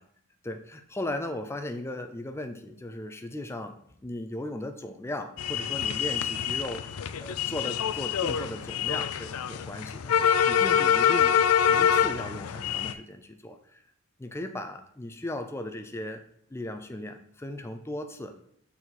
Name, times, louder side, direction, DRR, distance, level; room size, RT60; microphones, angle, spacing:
voice 1, 0.5-3.7 4.0-6.8 7.2-10.1 10.5-11.3 11.7-13.8 14.2-16.2 16.5-18.3, left 1 dB, 10° left, 6 dB, 0.4 m, -37 dB
sound 1, 5.4-12.9, left 8 dB, 75° left, 0.4 m, -25 dB
6.7 x 4.2 x 4.1 m, 0.68 s
head